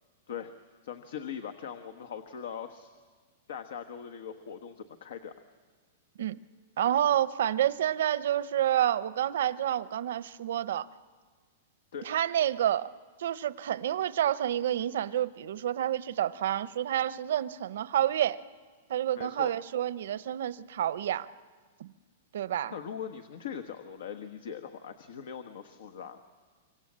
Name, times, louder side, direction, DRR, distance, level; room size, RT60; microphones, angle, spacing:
voice 1, 0.8-2.9 3.5-5.3 11.9-12.1 19.1-19.5 22.7-26.2, left 8 dB, 75° left, 9 dB, 1.2 m, -40 dB
voice 2, 6.8-10.9 12.0-12.9 13.2-18.4 18.9-21.3 21.8-21.9 22.3-22.7, right 11 dB, 75° right, 16 dB, 0.7 m, -29 dB
25.0 x 24.5 x 7.5 m, 1.5 s
supercardioid pair, 155°, 0 cm